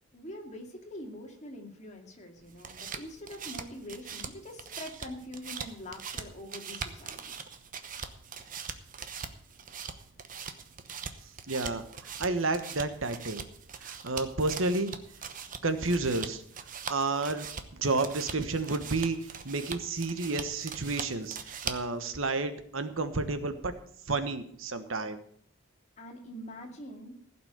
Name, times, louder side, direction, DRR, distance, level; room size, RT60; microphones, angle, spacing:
voice 1, 0.1-7.4 26.0-27.2, left 1 dB, 35° left, 2 dB, 2.4 m, -44 dB
sound 1, 2.4-22.0, right 6 dB, 40° right, 1.0 m, -42 dB
voice 2, 11.5-13.4 13.8-14.9 15.6-16.4 16.9-17.5 17.7-23.7 24.1-25.2, right 3 dB, 85° right, 10 dB, 1.3 m, -31 dB
15.5 x 6.0 x 8.0 m, 0.64 s
head